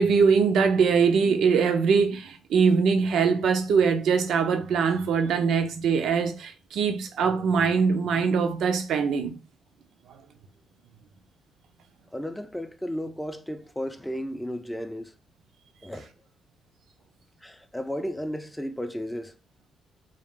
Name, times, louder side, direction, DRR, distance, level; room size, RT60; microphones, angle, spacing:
voice 1, 0.0-9.4, right 5 dB, 75° right, 0.6 m, -22 dB
voice 2, 12.1-15.1 15.8-16.1 17.4-19.3, equal, 5° left, 0.5 m, -34 dB
3.7 x 2.4 x 3.6 m
cardioid pair, 90°, 0 cm